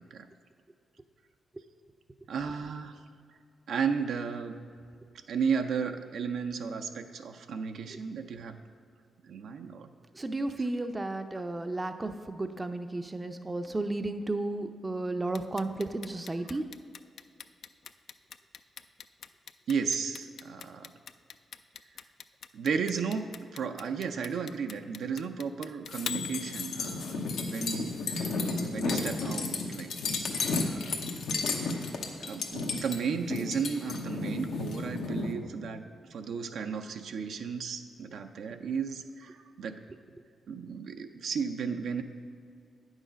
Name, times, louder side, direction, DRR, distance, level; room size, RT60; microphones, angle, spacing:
voice 1, 2.3-3.0 3.7-4.6 5.3-8.6 9.2-9.9 16.4-16.6 19.7-20.9 22.5-27.2 27.5-29.9 30.5-31.0 31.7-31.9 32.2-39.8 40.5-42.0, right 6 dB, 80° right, 6 dB, 0.5 m, -34 dB
voice 2, 10.1-16.6, right 2 dB, 25° right, 8 dB, 0.5 m, -33 dB
Clock, 15.3-27.3, left 7 dB, 70° left, 0.3 m, -42 dB
sound 1, 25.9-35.3, left 3 dB, 90° left, 0.9 m, -33 dB
9.1 x 6.3 x 5.1 m, 2.3 s
cardioid pair, 80°, 0 cm